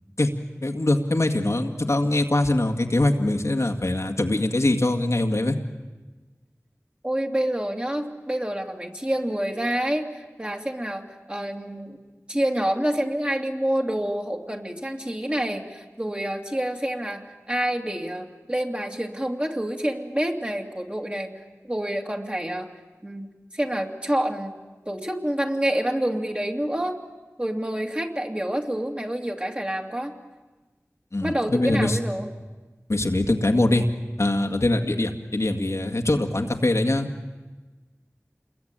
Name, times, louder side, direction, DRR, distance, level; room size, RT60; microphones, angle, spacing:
voice 1, 0.6-5.6 31.1-32.0 32.9-33.8 34.2-37.1, left 2 dB, 65° left, 4 dB, 2.0 m, -23 dB
voice 2, 7.0-12.0 12.3-22.7 23.0-24.6 24.9-27.0 27.4-30.1 31.2-32.3, right 1 dB, 20° right, 2 dB, 2.7 m, -28 dB
28.0 x 21.5 x 9.0 m, 1.2 s
wide cardioid pair, 45°, 5 cm